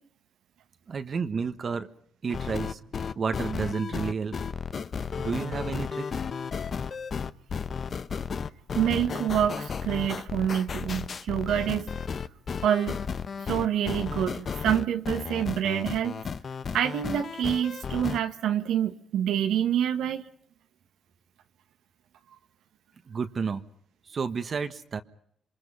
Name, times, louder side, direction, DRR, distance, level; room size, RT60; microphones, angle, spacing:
voice 1, 0.9-1.9 2.2-2.8 3.1-4.4 5.2-6.2 23.1-23.6 24.1-25.0, right 5 dB, 45° right, 1.4 m, -31 dB
sound 1, 2.3-18.2, left 6 dB, 45° left, 0.9 m, -33 dB
voice 2, 8.7-12.0 12.6-13.0 13.4-16.2 16.7-20.2, right 10 dB, 85° right, 1.4 m, -27 dB
28.0 x 23.0 x 5.6 m
cardioid pair, 95°, 0 cm